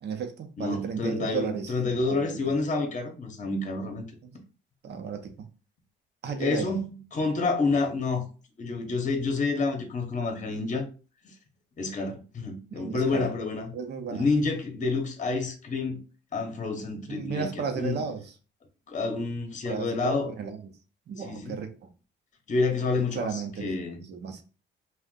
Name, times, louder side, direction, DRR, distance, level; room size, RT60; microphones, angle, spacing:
voice 1, 0.0-1.7 2.0-2.3 4.2-4.3 4.8-5.3 6.2-6.7 12.7-13.3 13.7-14.2 17.1-18.3 19.7-20.7 21.1-21.9 23.1-23.8 24.1-24.4, right 6 dB, 60° right, 0.7 m, -34 dB
voice 2, 0.6-4.1 6.4-8.3 8.6-10.9 11.2-11.3 11.8-13.7 14.1-16.0 16.3-18.0 18.9-20.3 21.2-21.6 22.5-24.0, left 3 dB, 40° left, 0.8 m, -29 dB
2.5 x 2.2 x 3.6 m
cardioid pair, 90°, 20 cm